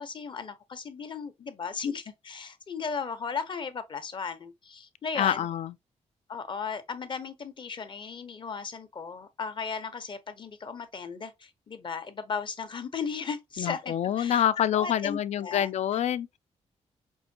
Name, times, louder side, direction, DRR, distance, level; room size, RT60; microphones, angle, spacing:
voice 1, 0.0-5.5 6.3-14.5 14.7-15.7, left 5 dB, 40° left, 0.7 m, -36 dB
voice 2, 5.2-5.7 13.6-16.4, left 10 dB, 70° left, 0.4 m, -27 dB
5.4 x 2.6 x 2.7 m
cardioid pair, 105°, 12 cm